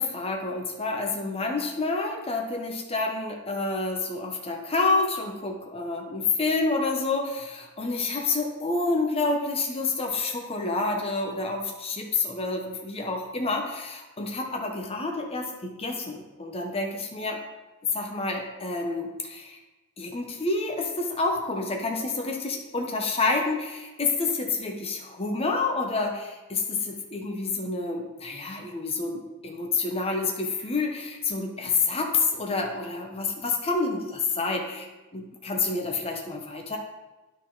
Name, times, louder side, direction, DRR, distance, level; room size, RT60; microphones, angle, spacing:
voice 1, 0.0-17.4 17.9-19.6 20.0-36.8, left 3 dB, 25° left, 1 dB, 0.9 m, -28 dB
9.8 x 6.5 x 3.9 m, 1.1 s
head